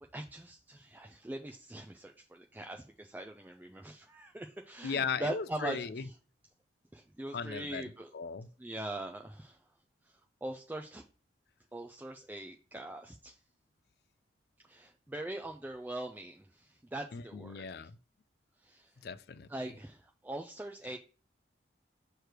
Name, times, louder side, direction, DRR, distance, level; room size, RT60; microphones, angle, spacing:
voice 1, 0.1-6.1 6.9-8.1 8.6-9.6 10.0-11.0 11.7-13.4 14.7-17.7 18.6-18.9 19.5-21.0, right 1 dB, 10° right, 0.3 m, -42 dB
voice 2, 4.8-6.0 7.3-8.5 17.1-18.0 19.0-19.5 20.9-21.0, left 5 dB, 60° left, 0.4 m, -37 dB
6.5 x 3.2 x 4.5 m
head